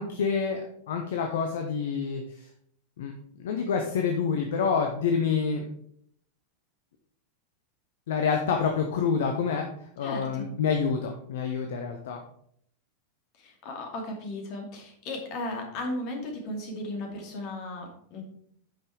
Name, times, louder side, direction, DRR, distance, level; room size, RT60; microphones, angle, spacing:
voice 1, 0.0-2.5 3.0-3.1 3.4-5.6 8.1-9.7 10.0-12.2, left 6 dB, 60° left, 4 dB, 0.9 m, -27 dB
voice 2, 10.0-10.5 13.4-18.2, left 1 dB, 45° left, 2 dB, 2.4 m, -36 dB
9.0 x 5.6 x 4.6 m, 0.67 s
figure-of-eight pair, 90°, 0 cm